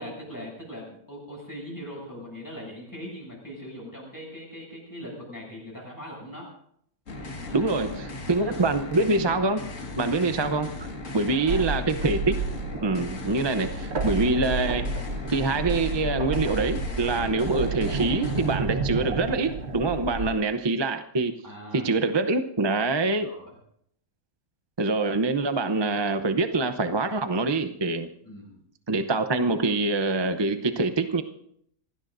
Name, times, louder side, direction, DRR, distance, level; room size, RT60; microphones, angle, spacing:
voice 1, 0.0-6.5 7.5-7.9 8.2-8.6 11.3-11.6 20.1-20.4 21.4-21.9 23.2-23.5 28.2-28.6, equal, 15° left, -2 dB, 7.6 m, -41 dB
sound 1, 7.1-18.6, left 2 dB, 60° left, 2.3 m, -37 dB
voice 2, 7.5-9.6 9.9-12.3 12.8-14.9 15.3-21.3 21.7-23.3 24.8-28.1 28.9-31.2, right 3 dB, 25° right, 8 dB, 0.6 m, -25 dB
sound 2, 11.5-20.3, right 3 dB, 50° right, 1.4 m, -31 dB
26.5 x 17.0 x 2.6 m, 0.69 s
omnidirectional pair, 1.5 m